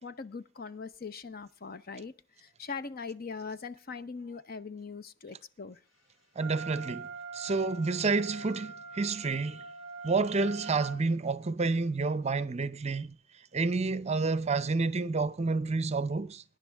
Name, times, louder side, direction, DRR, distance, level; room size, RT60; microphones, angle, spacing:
voice 1, 0.0-5.8, left 5 dB, 50° left, 0.7 m, -41 dB
Wind instrument woodwind instrument, 6.4-11.0, right 4 dB, 85° left, 3.0 m, -43 dB
voice 2, 6.4-7.1 7.3-9.6 10.0-13.2 13.5-16.4, right 3 dB, 35° right, 0.6 m, -29 dB
21.0 x 10.5 x 3.5 m
head